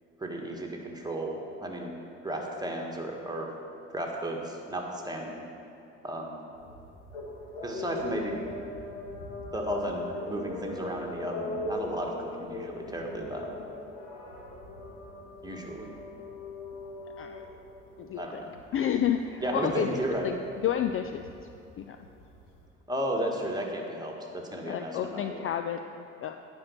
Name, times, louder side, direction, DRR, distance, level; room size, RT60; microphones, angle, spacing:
voice 1, 0.2-1.9 2.2-3.5 3.9-5.4 6.0-6.3 7.6-8.4 9.5-13.5 15.4-15.9 18.1-18.5 19.4-20.3 22.9-25.5, right 1 dB, 10° right, 0 dB, 1.7 m, -34 dB
sound 1, 6.5-22.7, left 2 dB, 80° left, 1.4 m, -41 dB
voice 2, 18.0-18.4 18.7-21.4 21.8-22.0 24.7-26.4, left 9 dB, 35° left, 7 dB, 0.4 m, -31 dB
9.7 x 5.4 x 7.0 m, 2.7 s
hypercardioid pair, 55°, 37 cm